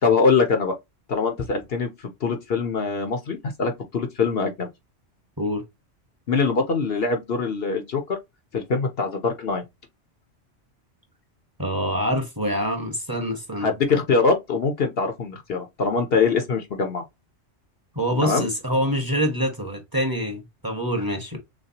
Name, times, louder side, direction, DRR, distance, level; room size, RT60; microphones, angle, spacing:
voice 1, 0.0-0.8 1.1-4.7 6.3-8.2 8.5-9.6 13.6-17.0 18.2-18.5, left 4 dB, 55° left, 1.0 m, -23 dB
voice 2, 11.6-13.7 17.9-21.4, equal, 20° right, 1.3 m, -25 dB
6.3 x 2.2 x 2.8 m
omnidirectional pair, 1.2 m